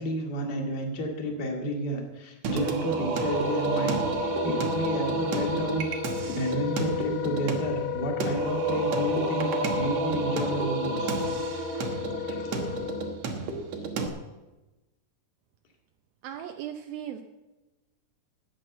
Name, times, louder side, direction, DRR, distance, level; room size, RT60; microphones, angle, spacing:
voice 1, 0.0-5.9 6.3-11.1 12.2-12.5, equal, 35° left, 1 dB, 2.0 m, -31 dB
Singing, 2.4-14.1, right 4 dB, 60° right, 2.1 m, -31 dB
Wind instrument woodwind instrument, 3.1-13.2, left 11 dB, 85° left, 2.6 m, -34 dB
voice 2, 16.2-17.2, right 10 dB, 80° right, 5 dB, 2.5 m, -37 dB
12.5 x 9.3 x 7.9 m, 1.1 s
omnidirectional pair, 4.3 m